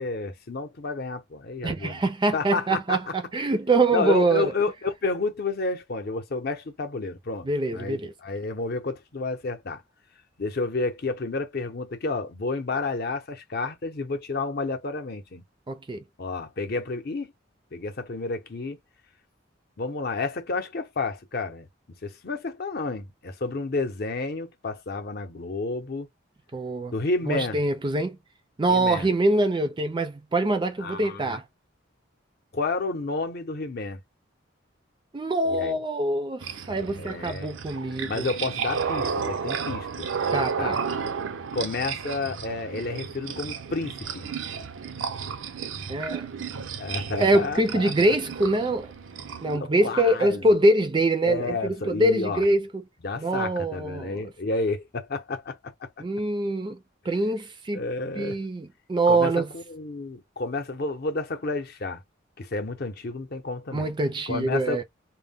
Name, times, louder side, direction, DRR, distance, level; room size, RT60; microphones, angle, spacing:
voice 1, 0.0-2.0 2.3-3.0 3.9-9.8 10.4-15.4 16.2-17.3 17.7-18.8 19.8-21.7 22.0-26.1 26.9-27.6 28.7-29.1 30.8-31.4 32.5-34.0 35.5-35.8 37.0-37.6 38.1-40.1 40.6-40.8 41.5-44.3 46.8-47.9 49.4-50.4 51.2-52.4 53.0-55.9 57.7-58.4 59.1-62.0 62.4-63.9 64.3-64.8, left 3 dB, 50° left, 0.7 m, -30 dB
voice 2, 1.6-4.5 7.4-8.1 15.7-16.0 26.5-26.9 27.3-28.2 28.6-31.4 35.1-38.3 40.3-40.8 45.9-46.3 47.2-48.9 49.4-52.8 53.2-54.2 56.0-56.8 57.1-57.8 58.2-59.5 63.7-64.8, right 2 dB, 25° right, 0.4 m, -24 dB
sound 1, 36.4-49.6, right 6 dB, 80° right, 0.5 m, -32 dB
2.2 x 2.1 x 3.4 m
head